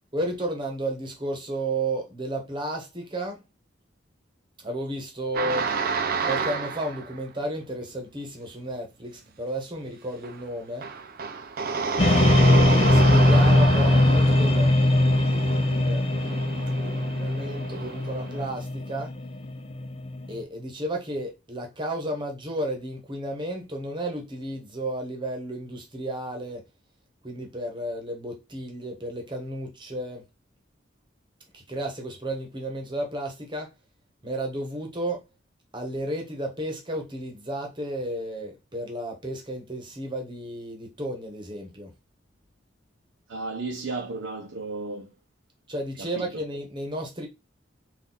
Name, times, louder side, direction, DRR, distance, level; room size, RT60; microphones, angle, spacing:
voice 1, 0.1-3.4 4.6-5.7 6.2-10.9 12.1-14.7 15.2-16.5 16.8-19.1 20.3-26.6 27.2-30.2 31.5-33.7 34.2-35.2 35.7-41.9 45.7-47.3, right 1 dB, 25° right, 1.2 m, -33 dB
sound 1, 5.3-7.2 10.2-10.4 10.8-18.5, right 4 dB, 50° right, 0.6 m, -30 dB
sound 2, 12.0-20.3, left 1 dB, 30° left, 0.4 m, -21 dB
voice 2, 43.3-45.1 46.0-46.3, right 3 dB, 90° right, 0.8 m, -34 dB
4.0 x 2.6 x 4.0 m
head